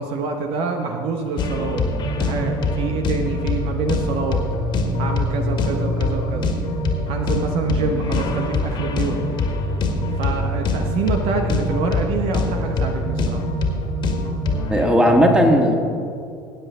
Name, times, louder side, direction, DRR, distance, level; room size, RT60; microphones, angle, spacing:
voice 1, 0.0-1.8 2.1-4.4 5.0-6.5 7.1-9.2 10.2-13.4, right 4 dB, 50° right, 4 dB, 1.1 m, -26 dB
sound 1, 1.4-14.9, left 2 dB, 40° left, 1.9 m, -23 dB
voice 2, 14.7-15.7, equal, 10° right, 2 dB, 2.2 m, -15 dB
19.0 x 9.8 x 3.7 m, 2.4 s
figure-of-eight pair, 65°, 11 cm